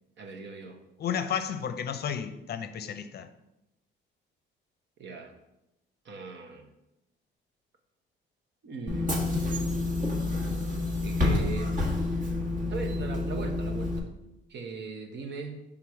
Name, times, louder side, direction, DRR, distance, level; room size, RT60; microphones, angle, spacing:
voice 1, 0.2-0.8 5.0-5.3 6.0-6.7 8.6-9.7 11.0-11.7 12.7-14.1 14.5-15.6, right 4 dB, 65° right, 1.0 m, -39 dB
voice 2, 1.0-3.3, left 8 dB, 55° left, 0.5 m, -32 dB
Bus / Engine, 8.9-14.0, left 2 dB, 40° right, 1.3 m, -28 dB
6.1 x 3.7 x 4.7 m
cardioid pair, 90°, 20 cm